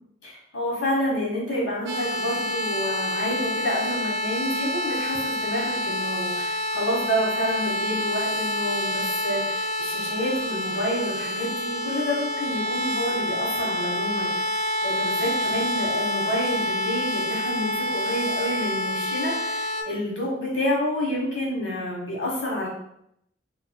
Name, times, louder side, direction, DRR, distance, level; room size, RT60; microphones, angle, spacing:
voice 1, 0.2-22.7, equal, 80° left, -4 dB, 1.2 m, -29 dB
sound 1, 1.9-19.8, left 1 dB, 60° right, 0.7 m, -27 dB
3.8 x 2.6 x 2.2 m, 0.75 s
head